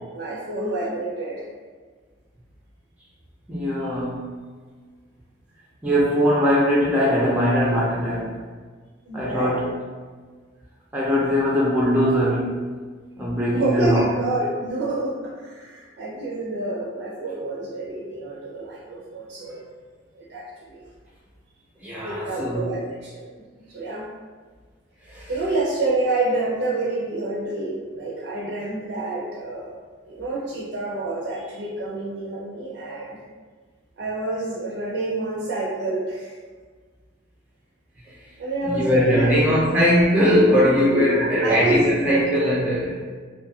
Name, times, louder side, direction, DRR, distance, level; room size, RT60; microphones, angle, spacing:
voice 1, 0.1-1.4 9.0-9.7 13.5-19.7 20.1-20.8 22.0-23.3 23.6-24.0 25.3-29.8 30.1-33.2 34.0-36.3 38.4-39.8 40.9-42.4, right 2 dB, 65° right, -6 dB, 0.5 m, -28 dB
voice 2, 3.5-4.3 5.8-8.4 9.1-9.7 10.9-12.7 13.2-14.1 21.8-22.7 25.1-25.3 38.1-38.2 38.6-43.1, equal, 10° right, -7 dB, 0.5 m, -21 dB
2.6 x 2.3 x 2.7 m, 1.5 s
head